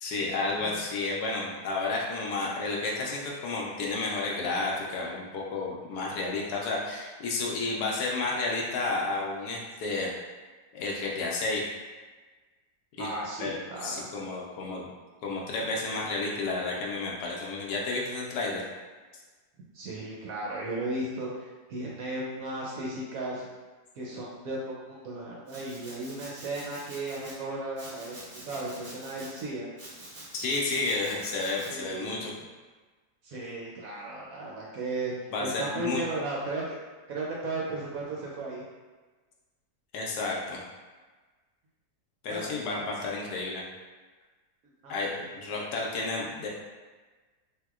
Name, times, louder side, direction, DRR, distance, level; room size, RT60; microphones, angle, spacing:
voice 1, 0.0-10.1 10.7-11.6 13.0-13.1 13.4-14.9 15.2-18.6 30.4-32.3 35.3-36.0 39.9-40.6 42.2-43.6 44.9-46.5, left 3 dB, 75° left, -2 dB, 1.0 m, -31 dB
voice 2, 13.0-14.1 19.7-23.5 24.0-29.7 31.7-32.3 33.2-36.7 37.1-38.6 42.3-42.5 44.8-45.4, right 2 dB, 70° right, -4 dB, 0.9 m, -35 dB
Domestic sounds home sounds, 25.5-27.4 27.8-29.4 29.8-31.7, right 1 dB, 45° right, 0.5 m, -46 dB
3.4 x 2.7 x 2.3 m, 1.3 s
omnidirectional pair, 1.8 m